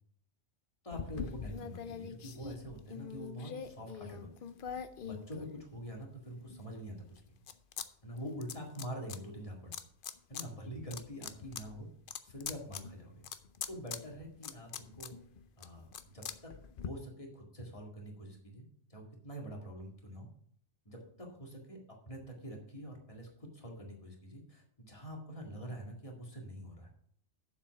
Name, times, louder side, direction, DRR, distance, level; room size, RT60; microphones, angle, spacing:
voice 1, 0.8-4.3 5.0-7.3 8.0-9.7 10.3-11.9 12.2-13.1 13.7-15.2 15.6-15.9 16.1-20.3 20.9-26.9, equal, 25° left, 0 dB, 2.1 m, -45 dB
sound 1, 0.9-6.0 6.5-7.9 8.1-9.2 9.7-10.5 10.8-16.9, left 7 dB, 55° left, 0.7 m, -44 dB
7.4 x 7.0 x 5.9 m, 0.63 s
omnidirectional pair, 1.3 m